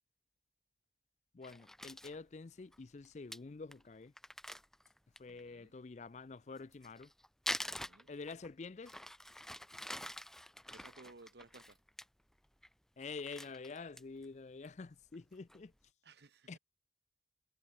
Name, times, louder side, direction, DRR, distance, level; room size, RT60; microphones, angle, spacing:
voice 1, 1.3-4.1 5.2-7.1 8.1-9.0 13.0-15.7 16.5-16.6, left 4 dB, 40° left, 0.4 m, -47 dB
Crumpling crinkling, 1.4-2.2 2.7-2.8 3.0-3.1 3.3-3.4 3.7-3.8 4.2-5.4 6.6-8.5 8.8-12.0 12.4-12.7 13.0-14.2 14.6-14.7 15.1-15.6, left 1 dB, 5° left, 0.9 m, -45 dB
voice 2, 5.3-5.8 7.6-8.1 10.7-11.8 16.0-16.6, right 3 dB, 70° right, 1.2 m, -59 dB
head